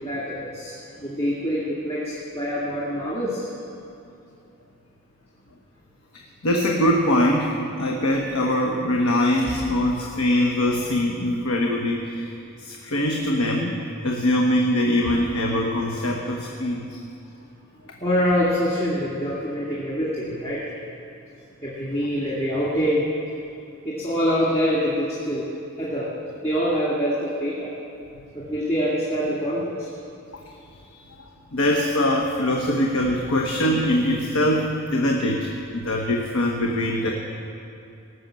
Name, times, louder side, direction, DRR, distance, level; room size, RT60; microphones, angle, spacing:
voice 1, 0.0-3.5 18.0-20.6 21.6-23.1 23.8-25.5 25.8-26.1 26.4-27.7 28.3-29.9, equal, 30° left, -7 dB, 2.1 m, -25 dB
voice 2, 6.1-12.3 12.6-13.7 14.0-17.0 31.5-37.1, left 1 dB, 90° left, 0 dB, 1.1 m, -22 dB
18.5 x 6.5 x 7.6 m, 2.6 s
head